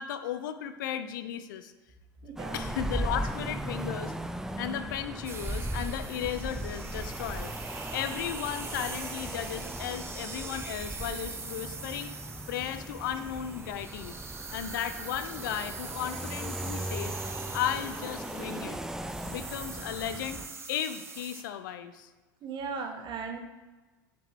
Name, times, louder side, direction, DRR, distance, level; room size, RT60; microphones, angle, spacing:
voice 1, 0.0-1.7 2.5-4.1 4.6-7.5 7.9-12.1 12.5-14.2 14.5-17.2 17.5-18.8 19.2-20.4 20.7-22.1, left 10 dB, 75° left, 10 dB, 0.6 m, -35 dB
voice 2, 2.2-2.6 22.4-23.4, right 5 dB, 45° right, 4 dB, 1.3 m, -37 dB
sound 1, 2.4-20.5, right 1 dB, 5° right, 0.4 m, -38 dB
sound 2, 5.2-21.4, right 4 dB, 25° right, 1.0 m, -42 dB
Bass guitar, 11.6-17.9, left 1 dB, 45° left, 2.4 m, -54 dB
7.5 x 5.2 x 4.6 m, 1.2 s
hypercardioid pair, 85°, 11 cm